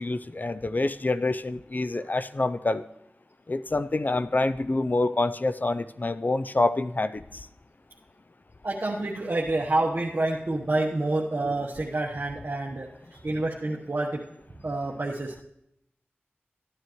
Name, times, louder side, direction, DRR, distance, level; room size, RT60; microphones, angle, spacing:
voice 1, 0.0-2.8 3.5-7.2, left 2 dB, 45° left, 12 dB, 0.5 m, -26 dB
voice 2, 8.6-12.9 13.2-14.2 14.6-15.4, right 2 dB, 55° right, -4 dB, 1.1 m, -28 dB
14.5 x 9.5 x 3.1 m, 0.79 s
cardioid pair, 40°, 4 cm